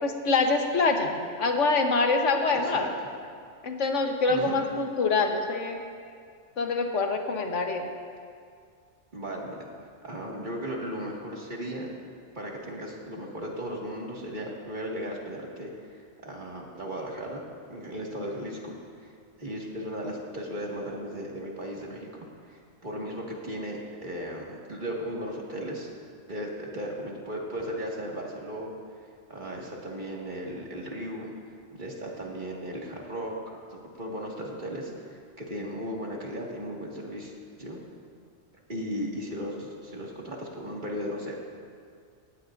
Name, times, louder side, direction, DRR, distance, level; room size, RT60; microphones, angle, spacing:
voice 1, 0.0-2.9 3.6-5.8 6.6-7.9, left 3 dB, 85° left, 4 dB, 1.5 m, -25 dB
voice 2, 2.5-2.9 4.3-4.6 9.1-9.7 10.0-11.9 12.3-17.4 17.7-19.1 19.4-22.1 22.5-25.9 26.3-28.7 29.3-31.3 31.7-33.3 33.7-37.3 37.6-37.8 38.7-41.4, equal, 40° right, -3 dB, 2.1 m, -36 dB
18.0 x 17.0 x 2.6 m, 2.2 s
omnidirectional pair, 1.2 m